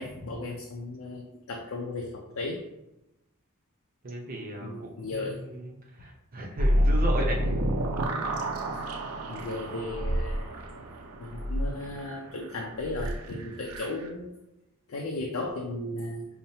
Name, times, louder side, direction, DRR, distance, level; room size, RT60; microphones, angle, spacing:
voice 1, 0.0-2.6 4.6-5.4 9.3-10.6 11.2-14.3 14.9-16.3, left 2 dB, 65° left, 0 dB, 0.5 m, -35 dB
voice 2, 4.0-7.5, right 1 dB, 40° right, 0 dB, 0.7 m, -36 dB
sound 1, 6.6-14.1, equal, 80° right, 0.5 m, -29 dB
5.5 x 2.1 x 2.7 m, 0.91 s
head